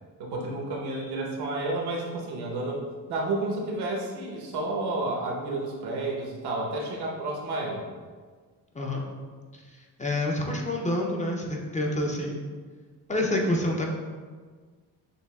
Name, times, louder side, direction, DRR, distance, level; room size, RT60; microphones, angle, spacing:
voice 1, 0.2-2.8 3.1-7.8, right 2 dB, 80° right, -1 dB, 1.0 m, -31 dB
voice 2, 10.0-12.5 13.1-13.9, left 1 dB, 20° left, -1 dB, 0.5 m, -27 dB
6.6 x 2.4 x 2.3 m, 1.5 s
cardioid pair, 100°, 38 cm